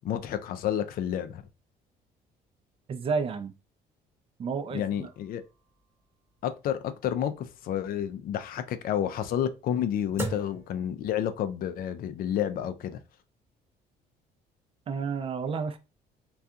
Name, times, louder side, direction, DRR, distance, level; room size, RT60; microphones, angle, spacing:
voice 1, 0.0-1.4 4.7-5.4 6.4-13.0, left 10 dB, 60° left, 0.4 m, -30 dB
voice 2, 2.9-3.5 4.4-5.1 14.9-15.8, right 5 dB, 35° right, 0.4 m, -31 dB
sound 1, 4.9-11.6, right 3 dB, 15° right, 0.8 m, -43 dB
2.6 x 2.3 x 2.3 m
cardioid pair, 110°, 17 cm